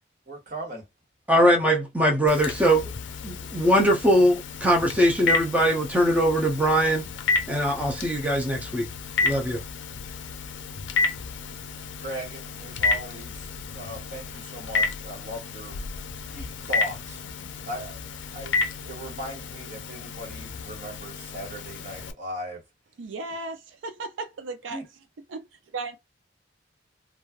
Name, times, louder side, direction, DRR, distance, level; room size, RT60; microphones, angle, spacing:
voice 1, 0.3-0.8 12.0-15.8 16.3-17.2 17.6-18.0 18.3-22.6 24.7-24.9, right 1 dB, 45° right, 1.4 m, -38 dB
voice 2, 1.3-2.9 3.2-7.0 7.5-8.9 9.2-9.6, equal, 10° right, 0.5 m, -21 dB
Telephone, 2.3-22.1, left 4 dB, 75° left, 0.5 m, -31 dB
voice 3, 23.0-24.8 25.3-25.4 25.7-26.0, right 3 dB, 85° right, 0.5 m, -35 dB
3.1 x 2.2 x 2.3 m
head